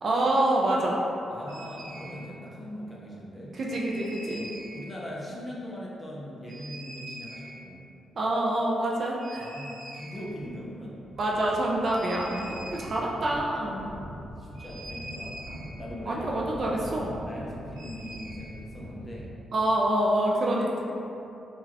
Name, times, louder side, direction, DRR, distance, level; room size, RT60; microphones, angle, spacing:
voice 1, 0.0-1.0 3.5-4.4 8.2-9.4 11.2-13.9 16.1-17.2 19.5-20.8, right 1 dB, 40° right, -3 dB, 0.3 m, -26 dB
voice 2, 1.3-3.6 4.4-7.8 9.4-11.0 12.9-13.4 14.4-15.4 15.8-16.2 17.3-19.3, equal, 15° left, -5 dB, 0.5 m, -40 dB
sound 1, 1.5-2.1 3.7-4.9 6.4-7.6 9.2-10.5 10.8-10.9 11.0-19.3, right 1 dB, 80° right, 0.7 m, -42 dB
3.7 x 2.2 x 2.8 m, 2.7 s
wide cardioid pair, 160°, 0 cm